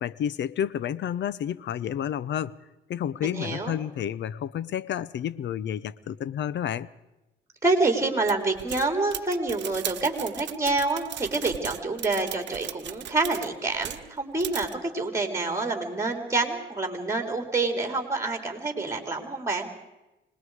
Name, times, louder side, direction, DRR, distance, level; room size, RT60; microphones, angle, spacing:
voice 1, 0.0-2.6 2.9-6.9, left 9 dB, 65° left, 20 dB, 0.8 m, -30 dB
voice 2, 3.2-3.8 7.6-19.7, right 3 dB, 15° right, 5 dB, 3.6 m, -27 dB
sound 1, 8.3-14.1 14.4-14.7, right 11 dB, 65° right, 0.9 m, -37 dB
26.0 x 20.0 x 4.9 m, 0.99 s
cardioid pair, 90°, 20 cm